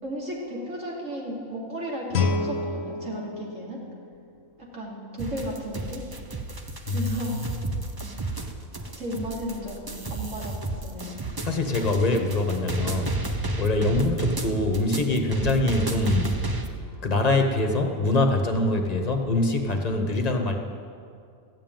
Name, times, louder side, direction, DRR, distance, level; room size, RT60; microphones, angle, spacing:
voice 1, 0.0-3.8 4.7-6.0 6.9-7.4 8.9-10.5 10.8-11.2, equal, 60° right, -4 dB, 2.9 m, -34 dB
Guitar, 2.1-4.9, left 3 dB, 70° left, 1.2 m, -30 dB
sound 1, 5.2-16.7, right 2 dB, 25° right, 0.5 m, -32 dB
voice 2, 6.9-7.8 11.4-13.2 13.6-16.4 17.0-20.6, left 2 dB, 30° left, 3 dB, 1.1 m, -24 dB
13.5 x 7.4 x 9.0 m, 2.3 s
omnidirectional pair, 1.5 m